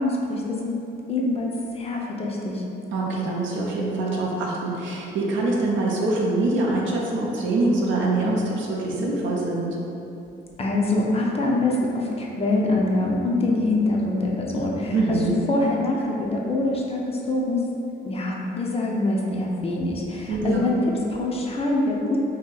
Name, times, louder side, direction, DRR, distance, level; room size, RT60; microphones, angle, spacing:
voice 1, 0.0-2.6 10.6-17.6 18.0-20.7 21.1-22.2, left 2 dB, 30° left, -2 dB, 0.5 m, -24 dB
voice 2, 2.9-9.8 14.9-15.4 20.3-20.7, right 2 dB, 75° right, -3 dB, 0.6 m, -24 dB
2.7 x 2.7 x 3.9 m, 2.9 s
cardioid pair, 90°, 20 cm